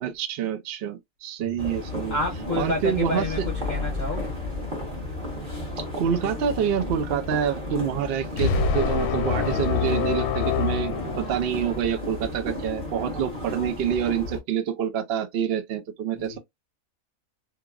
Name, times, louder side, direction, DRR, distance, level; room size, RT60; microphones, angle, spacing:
voice 1, 0.0-2.2 2.6-3.2 5.8-16.4, right 8 dB, 70° right, 0.5 m, -27 dB
sound 1, 1.6-14.4, left 2 dB, 35° right, 1.1 m, -33 dB
voice 2, 2.1-4.3 16.2-16.4, left 2 dB, 40° left, 0.7 m, -29 dB
sound 2, 8.4-11.8, left 5 dB, 85° left, 1.1 m, -26 dB
2.8 x 2.4 x 2.3 m
omnidirectional pair, 1.5 m